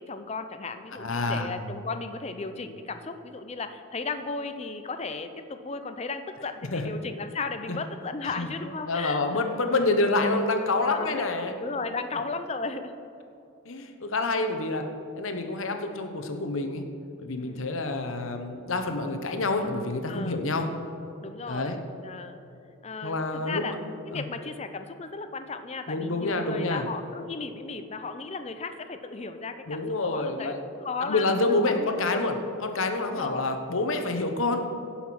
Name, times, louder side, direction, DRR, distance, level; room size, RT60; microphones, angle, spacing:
voice 1, 0.0-9.6 10.9-11.3 11.6-12.9 17.4-17.7 20.1-20.4 21.2-22.4 22.8-23.8 24.1-30.5 30.8-32.3 33.0-33.6, left 4 dB, 30° left, 9 dB, 0.5 m, -35 dB
voice 2, 1.0-1.5 6.7-6.8 7.7-7.8 8.4-8.5 8.9-11.5 13.7-14.8 15.2-16.8 17.2-20.7 21.5-21.8 23.0-23.8 24.1-24.2 25.9-26.8 29.7-30.6 31.0-34.7, left 2 dB, 70° left, 6 dB, 0.9 m, -27 dB
16.5 x 5.8 x 5.9 m, 2.7 s
head